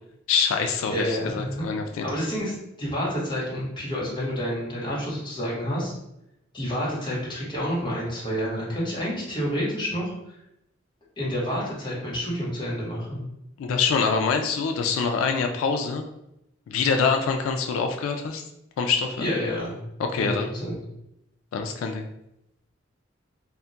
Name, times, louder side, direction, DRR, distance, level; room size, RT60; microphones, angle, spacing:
voice 1, 0.3-2.1 13.6-16.0 16.7-18.4 18.8-19.3 20.0-20.5 21.5-22.1, left 5 dB, 90° left, 4 dB, 0.3 m, -25 dB
voice 2, 0.9-1.6 2.0-5.9 6.5-10.1 11.2-13.3 19.2-19.8 20.2-20.7, equal, 25° left, -6 dB, 1.0 m, -29 dB
2.2 x 2.1 x 3.9 m, 0.83 s
head